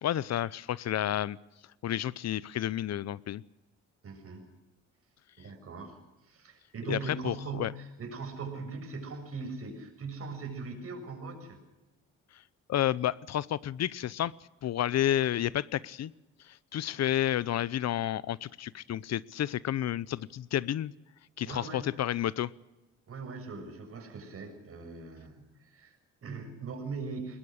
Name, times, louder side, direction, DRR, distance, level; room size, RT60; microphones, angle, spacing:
voice 1, 0.0-1.4 1.8-3.4 6.9-7.7 12.3-12.4 12.7-14.3 14.6-16.1 16.4-20.9 21.4-22.5, left 12 dB, 60° left, 20 dB, 0.7 m, -31 dB
voice 2, 4.0-4.4 5.4-11.6 21.4-21.9 23.1-27.4, right 4 dB, 50° right, 4 dB, 6.7 m, -40 dB
22.0 x 20.0 x 6.6 m, 1.0 s
cardioid pair, 90°, 30 cm